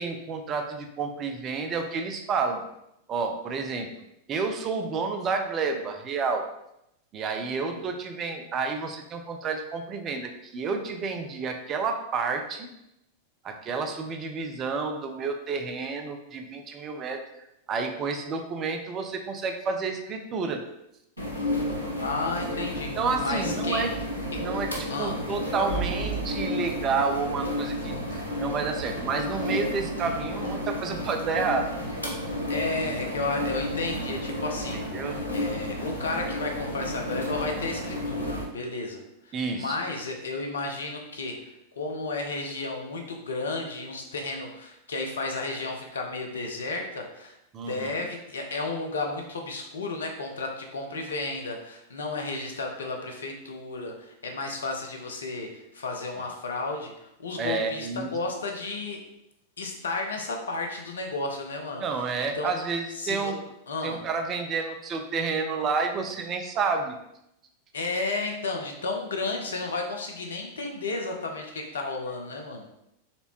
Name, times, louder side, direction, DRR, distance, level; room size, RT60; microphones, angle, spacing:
voice 1, 0.0-2.6 3.1-3.9 4.3-6.4 7.1-12.7 13.4-17.2 17.7-20.6 23.0-24.0 24.4-24.7 25.0-31.7 34.7-35.2 39.3-39.8 47.5-47.9 57.4-58.2 61.8-63.4 63.8-67.0, right 4 dB, 30° right, 5 dB, 0.5 m, -30 dB
sound 1, 21.2-38.4, left 1 dB, 90° right, 0.9 m, -32 dB
voice 2, 22.0-23.9 24.3-24.4 24.9-25.2 32.5-39.0 39.3-59.0 59.6-62.5 62.9-63.3 63.7-64.0 67.7-72.7, left 3 dB, 70° left, 2 dB, 0.7 m, -33 dB
4.2 x 3.4 x 2.9 m, 0.82 s
figure-of-eight pair, 90°, 0 cm